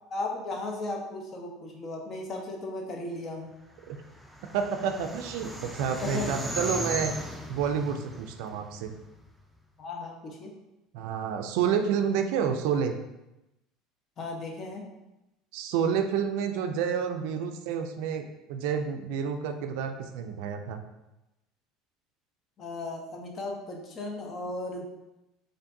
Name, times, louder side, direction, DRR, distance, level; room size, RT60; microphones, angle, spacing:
voice 1, 0.1-3.5 6.0-6.4 9.8-10.5 14.2-14.8 22.6-24.8, left 2 dB, 45° left, 1 dB, 0.8 m, -35 dB
sound 1, 3.9-9.3, equal, 5° right, 0.4 m, -37 dB
voice 2, 4.5-7.1 7.5-8.9 10.9-12.9 15.5-18.2 18.5-20.8, right 7 dB, 70° right, 6 dB, 0.3 m, -29 dB
4.4 x 2.5 x 2.6 m, 0.94 s
hypercardioid pair, 80°, 0 cm